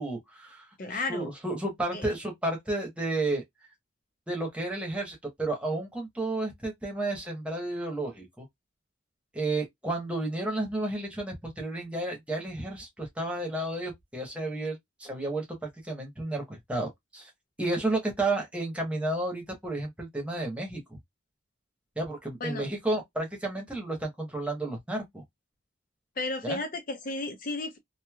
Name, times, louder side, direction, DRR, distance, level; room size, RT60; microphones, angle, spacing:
voice 1, 0.0-3.4 4.3-8.4 9.3-17.3 17.6-21.0 22.0-25.2 26.4-26.6, right 2 dB, 5° right, 1.0 m, -32 dB
voice 2, 0.8-1.3 1.9-2.1 22.4-22.7 26.2-27.8, left 2 dB, 45° left, 0.5 m, -33 dB
3.2 x 2.6 x 2.3 m
head